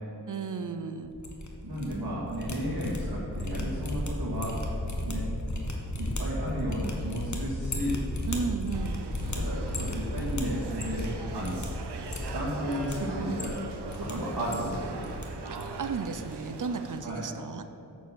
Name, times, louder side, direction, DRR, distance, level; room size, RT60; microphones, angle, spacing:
voice 1, 0.3-1.1 8.3-9.0 15.6-17.7, right 5 dB, 50° right, 9 dB, 0.7 m, -34 dB
sound 1, 1.0-1.9 2.2-11.1 11.4-11.7 12.0-12.9 13.3-14.1 14.4-15.2 15.5-16.3, left 1 dB, 45° left, 1.5 m, -34 dB
voice 2, 1.6-4.6 5.0-5.5 6.0-8.0 9.3-11.7 12.3-13.6 13.9-15.1 17.0-17.2, equal, 70° right, -8 dB, 2.4 m, -33 dB
sound 2, 8.7-17.0, right 4 dB, 85° right, 0.9 m, -41 dB
8.3 x 7.1 x 6.3 m, 3.0 s
wide cardioid pair, 70°, 40 cm